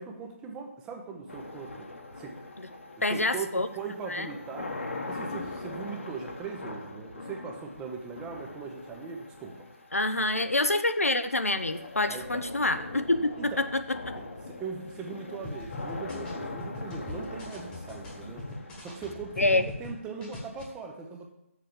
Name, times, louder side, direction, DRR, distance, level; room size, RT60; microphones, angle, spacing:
voice 1, 0.0-1.9 2.2-2.4 2.9-4.7 5.1-9.7 12.1-12.4 13.4-13.6 14.1-18.5 18.8-21.3, right 5 dB, 10° right, 2 dB, 0.8 m, -40 dB
sound 1, 1.3-20.3, left 2 dB, 60° left, 1.3 m, -42 dB
voice 2, 3.0-3.7 4.1-4.3 9.9-14.1 19.4-19.6, left 2 dB, 80° left, 10 dB, 0.7 m, -27 dB
sound 2, 15.4-19.9 20.2-20.6, left 2 dB, 10° left, 1.4 m, -40 dB
6.7 x 6.2 x 7.3 m, 0.86 s
figure-of-eight pair, 145°, 8 cm